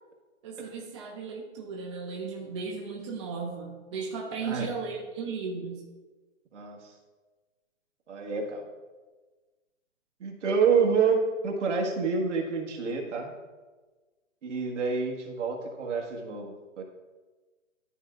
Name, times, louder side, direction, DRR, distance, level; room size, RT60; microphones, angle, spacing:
voice 1, 0.4-5.8, right 5 dB, 25° right, -1 dB, 0.6 m, -36 dB
voice 2, 8.1-8.6 10.2-13.3 14.4-16.5 16.8-16.9, right 5 dB, 60° right, 0 dB, 1.8 m, -27 dB
12.5 x 4.5 x 2.5 m, 1.3 s
hypercardioid pair, 150°, 40 cm